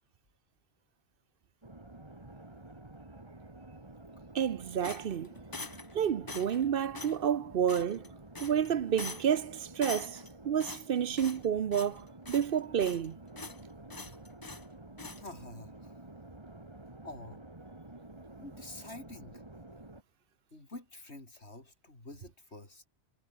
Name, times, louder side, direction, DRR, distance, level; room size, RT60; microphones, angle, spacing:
sound 1, 1.6-20.0, right 2 dB, 25° right, 2.3 m, -50 dB
voice 1, 4.3-5.3 5.9-8.1 8.4-13.2, right 8 dB, 60° right, 0.9 m, -30 dB
sound 2, 4.8-5.9 6.3-6.6 6.9-7.2 7.7-8.1 8.3-8.7 9.0-9.4 9.8-10.3 10.6-11.5 11.7-12.0 12.3-13.1 13.4-13.6 13.9-14.7 15.0-15.2, left 3 dB, 20° left, 0.9 m, -43 dB
voice 2, 15.1-16.0 17.0-17.4 18.4-19.4 20.5-22.8, left 2 dB, 75° left, 5.4 m, -48 dB
omnidirectional pair, 1.1 m